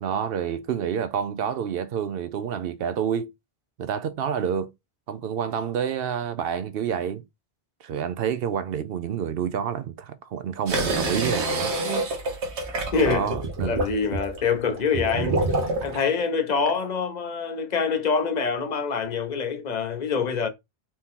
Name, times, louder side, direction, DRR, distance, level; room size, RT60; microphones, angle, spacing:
voice 1, 0.0-3.3 3.8-4.7 5.1-7.2 7.8-11.7 13.0-13.8, right 8 dB, 65° right, 0.7 m, -28 dB
sound 1, 10.7-16.0, right 2 dB, 85° right, 1.4 m, -27 dB
voice 2, 12.9-13.3 13.6-15.4 15.8-20.5, left 5 dB, 45° left, 0.8 m, -25 dB
4.4 x 2.8 x 3.7 m
omnidirectional pair, 1.1 m